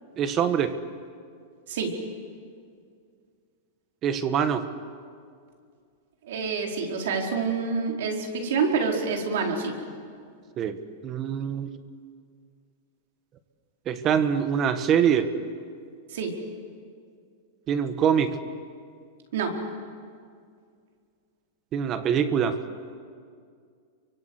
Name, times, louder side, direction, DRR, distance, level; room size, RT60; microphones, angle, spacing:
voice 1, 0.2-0.8 4.0-4.7 10.6-10.8 11.0-11.7 13.9-15.3 17.7-18.4 21.7-22.6, right 8 dB, 20° right, 10 dB, 1.3 m, -24 dB
voice 2, 1.7-2.0 6.2-9.7 16.1-16.4 19.3-19.6, right 5 dB, 65° right, 1 dB, 4.8 m, -27 dB
28.0 x 24.5 x 8.2 m, 2.2 s
supercardioid pair, 175°, 0 cm